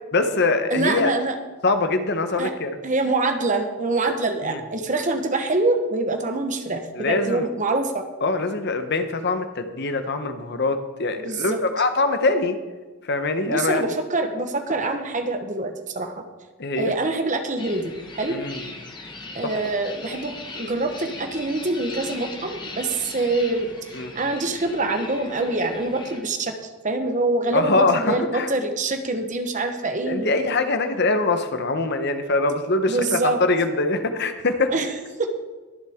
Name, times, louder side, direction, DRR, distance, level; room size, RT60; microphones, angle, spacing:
voice 1, 0.1-1.1 1.6-2.8 4.4-4.6 7.0-7.5 8.2-12.6 13.0-14.0 16.6-16.9 18.3-18.7 19.4-19.6 23.9-24.1 27.5-28.5 30.1-34.7, left 3 dB, 50° left, 8 dB, 0.9 m, -23 dB
voice 2, 0.7-1.3 2.4-2.5 2.8-8.0 11.2-11.6 13.5-16.2 16.8-18.3 19.3-23.7 24.1-26.5 26.8-30.3 32.8-33.4 34.7-34.9 35.2-35.4, right 2 dB, 35° right, 6 dB, 1.1 m, -25 dB
sound 1, 17.6-26.2, left 3 dB, 20° left, 1.3 m, -39 dB
21.5 x 7.3 x 3.6 m, 1.3 s
head